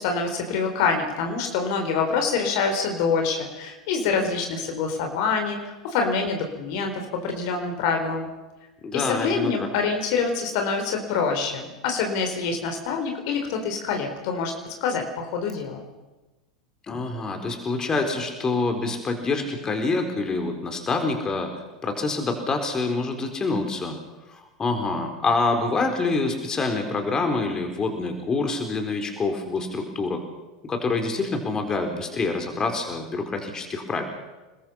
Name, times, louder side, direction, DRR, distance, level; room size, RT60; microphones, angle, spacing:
voice 1, 0.0-6.9 7.2-8.3 8.9-14.5 14.8-15.8, left 5 dB, 55° left, 4 dB, 4.4 m, -26 dB
voice 2, 8.8-9.7 16.9-21.5 21.8-24.0 24.3-30.2 30.6-34.0, left 3 dB, 20° left, 5 dB, 4.2 m, -26 dB
29.0 x 21.0 x 5.7 m, 1.1 s
figure-of-eight pair, 85°, 3 cm